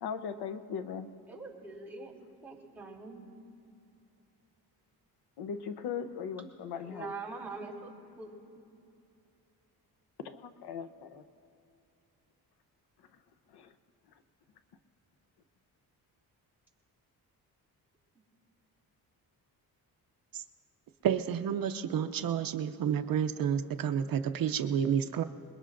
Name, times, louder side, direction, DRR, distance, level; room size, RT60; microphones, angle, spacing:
voice 1, 0.0-1.1 5.4-7.1 10.2-11.2 13.5-13.7, left 7 dB, 90° left, 9 dB, 0.8 m, -39 dB
voice 2, 1.3-2.1 2.4-3.2 6.8-7.9 8.2-8.3, right 3 dB, 5° right, -6 dB, 3.1 m, -43 dB
voice 3, 21.0-25.2, right 8 dB, 65° right, 8 dB, 0.6 m, -30 dB
26.0 x 21.5 x 2.6 m, 2.6 s
cardioid pair, 140°, 38 cm